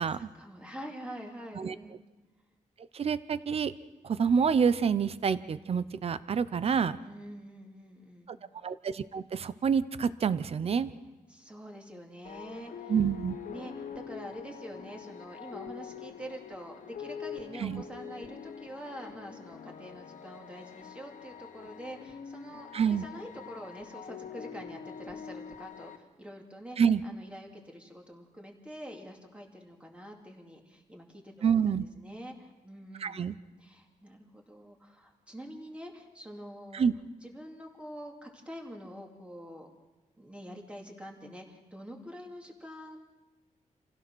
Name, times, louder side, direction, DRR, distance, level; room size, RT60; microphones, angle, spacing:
voice 1, 0.0-2.0 7.0-8.4 11.3-12.9 13.5-26.8 27.0-36.9 37.2-39.7 40.2-43.0, equal, 10° right, 1 dB, 2.6 m, -46 dB
voice 2, 2.9-3.7 4.0-7.0 8.3-8.4 8.6-10.9 12.9-13.4 17.6-17.8 22.7-23.1 26.8-27.0 31.4-31.8 33.0-33.3 36.7-36.9, right 6 dB, 50° right, 15 dB, 0.7 m, -27 dB
sound 1, 12.2-26.0, left 7 dB, 80° left, 1.7 m, -44 dB
26.5 x 16.0 x 6.2 m, 1.1 s
wide cardioid pair, 150°, 13 cm